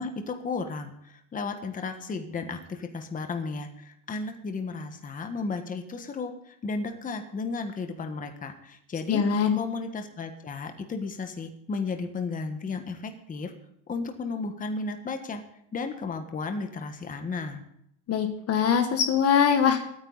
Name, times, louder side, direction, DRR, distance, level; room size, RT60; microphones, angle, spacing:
voice 1, 0.0-9.2 9.5-13.5 13.9-15.4 15.7-17.6, left 4 dB, 20° left, 6 dB, 1.4 m, -34 dB
voice 2, 9.1-9.6 18.1-19.8, left 7 dB, 40° left, 7 dB, 1.3 m, -22 dB
22.5 x 9.5 x 4.0 m, 0.75 s
cardioid pair, 150°, 39 cm